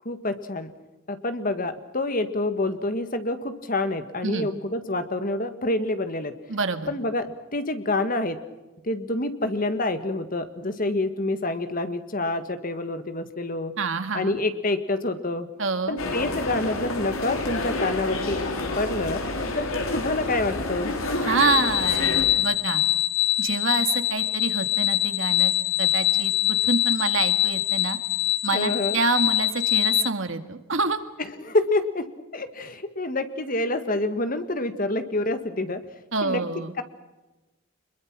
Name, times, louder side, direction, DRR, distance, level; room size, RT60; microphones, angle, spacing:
voice 1, 0.1-0.7 1.1-6.3 6.9-8.4 8.8-13.8 14.1-15.5 15.9-18.4 18.8-19.2 19.6-19.7 19.9-20.9 28.5-29.0 31.2-32.1 32.3-35.8 36.2-36.4 36.8-36.9, left 2 dB, 40° left, 9 dB, 1.7 m, -27 dB
voice 2, 6.5-6.9 13.8-14.4 15.6-16.0 21.2-22.8 23.4-25.5 25.8-28.0 28.4-31.0 36.1-36.7, right 4 dB, 65° right, 9 dB, 1.8 m, -27 dB
sound 1, 16.0-22.3, left 2 dB, 80° left, 3.6 m, -29 dB
sound 2, 21.4-30.1, left 13 dB, 60° left, 0.7 m, -24 dB
25.0 x 22.0 x 6.2 m, 1.1 s
head